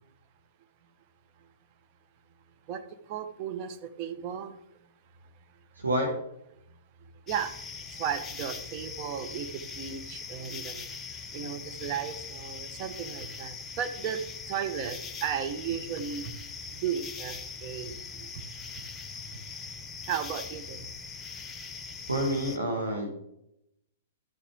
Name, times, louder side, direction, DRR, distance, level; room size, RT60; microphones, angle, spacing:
voice 1, 3.1-4.6 7.3-7.5 7.9-10.9 11.3-14.2 14.5-16.3 16.7-18.3 20.1-20.8, right 8 dB, 40° right, 8 dB, 1.0 m, -35 dB
voice 2, 5.8-6.1 22.1-23.1, right 1 dB, 80° right, 1 dB, 1.8 m, -28 dB
sound 1, 7.3-22.6, left 5 dB, 15° left, 0.8 m, -41 dB
11.5 x 8.5 x 3.5 m, 0.79 s
figure-of-eight pair, 110°, 0 cm